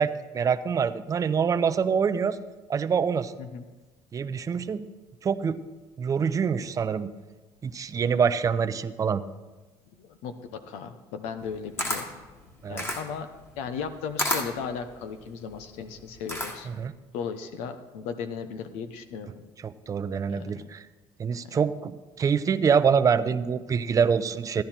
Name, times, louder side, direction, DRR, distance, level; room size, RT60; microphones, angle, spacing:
voice 1, 0.0-2.4 2.7-3.3 4.1-4.8 5.2-5.6 6.0-7.1 7.6-9.2 12.6-12.8 16.7-16.9 19.6-20.8 21.2-24.6, right 6 dB, 30° right, 10 dB, 0.6 m, -25 dB
voice 2, 10.0-12.0 12.7-13.3 13.6-16.7 17.1-19.3 20.3-20.5 21.4-21.5, left 6 dB, 85° left, 9 dB, 0.9 m, -36 dB
Camera, 11.4-16.8, left 1 dB, 20° left, 1.6 m, -32 dB
14.0 x 10.5 x 4.4 m, 1.2 s
cardioid pair, 100°, 11 cm